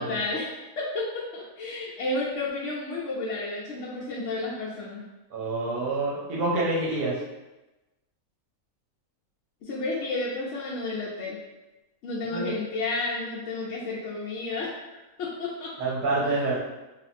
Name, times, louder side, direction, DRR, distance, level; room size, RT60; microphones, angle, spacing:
voice 1, 0.0-5.0 9.7-11.4 12.0-14.7 15.2-15.9 16.2-16.5, left 2 dB, 65° left, -6 dB, 0.8 m, -31 dB
voice 2, 5.3-7.2 12.3-12.5 15.8-16.6, right 2 dB, 90° right, -5 dB, 1.2 m, -27 dB
3.4 x 2.5 x 2.5 m, 1.1 s
omnidirectional pair, 1.5 m